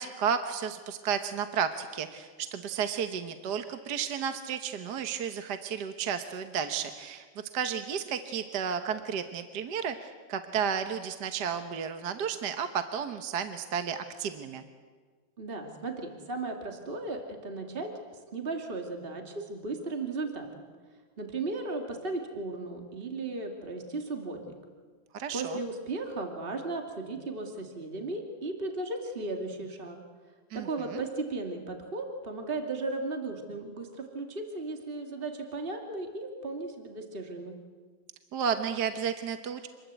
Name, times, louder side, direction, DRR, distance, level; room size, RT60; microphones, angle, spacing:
voice 1, 0.0-7.3 7.5-14.6 25.1-25.6 30.5-31.0 38.3-39.7, right 7 dB, 60° right, 8 dB, 1.6 m, -32 dB
voice 2, 15.4-17.9 18.3-20.6 21.2-24.6 25.3-30.0 30.5-37.6, right 3 dB, 25° right, 3 dB, 2.6 m, -36 dB
27.0 x 21.0 x 8.3 m, 1.5 s
omnidirectional pair, 2.2 m